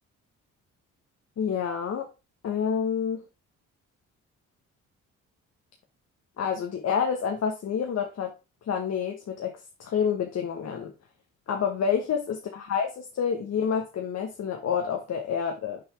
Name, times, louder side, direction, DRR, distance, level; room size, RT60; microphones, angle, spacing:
voice 1, 1.4-2.1 2.4-3.2 6.4-8.3 8.7-10.9 11.5-15.8, left 7 dB, 55° left, 3 dB, 1.2 m, -28 dB
6.2 x 4.1 x 4.6 m, 0.28 s
cardioid pair, 90°, 30 cm